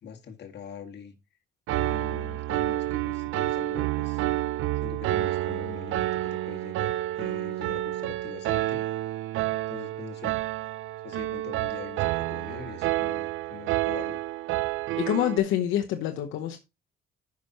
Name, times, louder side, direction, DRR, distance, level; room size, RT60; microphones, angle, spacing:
voice 1, 0.0-1.2 1.7-4.2 4.7-8.8 9.7-10.4 11.0-14.2, left 7 dB, 60° left, 2.0 m, -43 dB
Piano, 1.7-15.4, right 15 dB, 85° right, 0.5 m, -29 dB
voice 2, 15.0-16.6, left 11 dB, 90° left, 0.9 m, -26 dB
14.0 x 5.9 x 2.9 m
cardioid pair, 90°, 20 cm